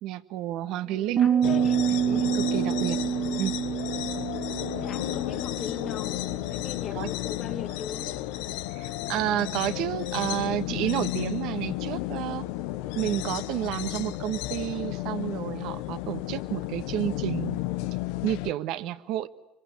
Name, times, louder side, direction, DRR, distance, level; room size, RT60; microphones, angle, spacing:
voice 1, 0.0-1.3 1.9-3.0 3.3-3.6 6.9-7.1 8.7-12.5 12.9-17.6 18.2-19.3, right 13 dB, 65° right, 1.6 m, -30 dB
voice 2, 0.8-1.8 3.0-3.5 4.7-6.1 6.5-8.1, left 8 dB, 50° left, 2.9 m, -39 dB
Piano, 1.2-6.8, right 9 dB, 45° right, 1.3 m, -28 dB
sound 1, 1.4-18.5, left 16 dB, 75° left, 1.0 m, -33 dB
25.5 x 24.0 x 9.7 m
hypercardioid pair, 80°, 0 cm